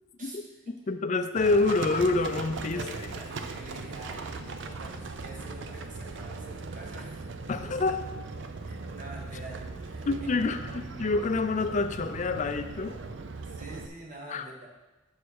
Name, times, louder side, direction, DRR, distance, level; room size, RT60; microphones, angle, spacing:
voice 1, 0.9-2.8 7.5-8.0 10.1-13.0 14.3-14.4, left 3 dB, 35° left, 9 dB, 0.4 m, -27 dB
Livestock farm animals working animals, 1.4-13.9, right 3 dB, 60° right, 0.5 m, -39 dB
voice 2, 2.5-7.3 7.7-7.8 8.6-10.1 10.5-11.2 13.4-14.7, right 1 dB, 40° right, -1 dB, 1.5 m, -46 dB
7.2 x 6.4 x 4.6 m, 1.1 s
head